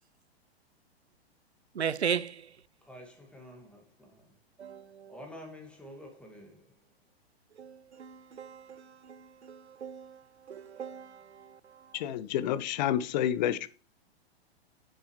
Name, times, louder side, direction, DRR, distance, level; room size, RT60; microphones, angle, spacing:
voice 1, 1.7-2.5 4.6-5.1 7.6-10.2 10.5-11.6, right 7 dB, 90° right, 0.5 m, -37 dB
voice 2, 2.8-4.3 5.1-6.7, left 1 dB, 5° left, 1.8 m, -49 dB
voice 3, 11.9-13.7, left 11 dB, 45° left, 0.6 m, -29 dB
7.7 x 6.5 x 3.1 m
figure-of-eight pair, 105°, 32 cm